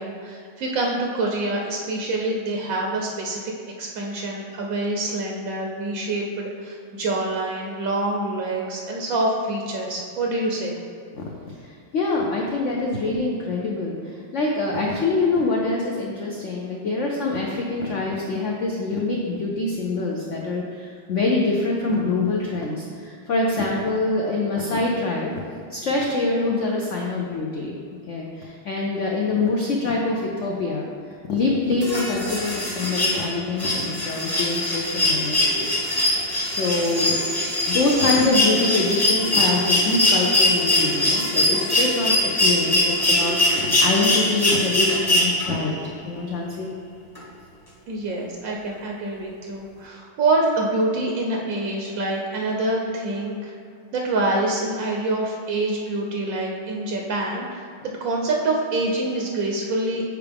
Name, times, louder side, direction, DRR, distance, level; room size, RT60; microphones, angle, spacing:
voice 1, 0.0-3.4 3.8-10.8 35.5-38.3 47.9-53.5 53.9-57.7 58.0-60.0, right 2 dB, 65° right, 0 dB, 0.9 m, -26 dB
voice 2, 11.1-25.3 25.7-27.8 28.1-30.9 31.3-35.7 35.9-36.2 36.4-37.2 37.7-45.7 46.0-46.7, left 3 dB, 85° left, -2 dB, 0.6 m, -25 dB
sound 1, 31.8-45.7 47.1-47.2, left 1 dB, 15° left, 0.8 m, -22 dB
8.0 x 4.7 x 3.4 m, 2.2 s
omnidirectional pair, 2.1 m